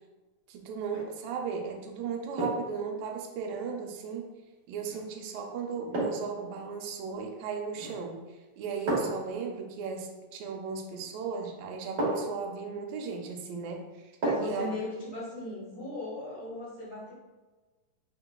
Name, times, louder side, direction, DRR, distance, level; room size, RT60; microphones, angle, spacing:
voice 1, 0.5-4.3 4.7-8.2 8.6-13.8 14.4-14.7, right 5 dB, 80° right, 2 dB, 2.2 m, -36 dB
sound 1, 0.8-1.1 2.4-2.8 4.9-5.1 5.9-6.4 7.7-8.1 8.9-9.3 11.0-11.1 12.0-12.4 14.2-14.7 15.0-15.1, right 2 dB, 60° right, 1.0 m, -32 dB
voice 2, 14.2-17.1, left 2 dB, 60° left, -8 dB, 1.0 m, -38 dB
5.6 x 3.8 x 2.2 m, 1.2 s
omnidirectional pair, 4.1 m